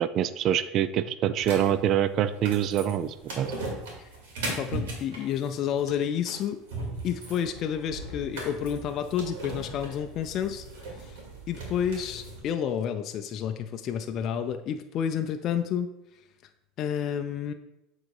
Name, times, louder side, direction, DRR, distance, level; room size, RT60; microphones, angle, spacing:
voice 1, 0.0-3.5, right 10 dB, 45° right, 13 dB, 0.4 m, -25 dB
sound 1, 1.4-12.4, right 2 dB, 85° right, 2.5 m, -38 dB
voice 2, 4.5-6.6 7.0-11.2 11.5-15.9 16.8-17.5, left 8 dB, 45° left, 7 dB, 0.5 m, -30 dB
7.4 x 4.0 x 4.8 m, 0.87 s
supercardioid pair, 120°, 0 cm